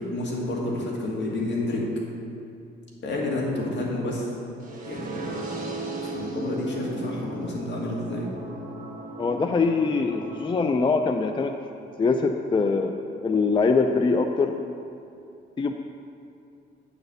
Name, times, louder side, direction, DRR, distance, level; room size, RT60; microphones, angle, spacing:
voice 1, 0.0-1.9 3.0-4.3 4.9-8.3, left 2 dB, 65° left, -3 dB, 1.9 m, -30 dB
sound 1, 4.6-10.6, right 2 dB, 40° right, 1.5 m, -37 dB
voice 2, 9.2-11.6 12.0-14.6 15.6-15.7, left 4 dB, 25° left, 5 dB, 0.4 m, -23 dB
8.7 x 4.2 x 6.7 m, 2.5 s
cardioid pair, 90°, 20 cm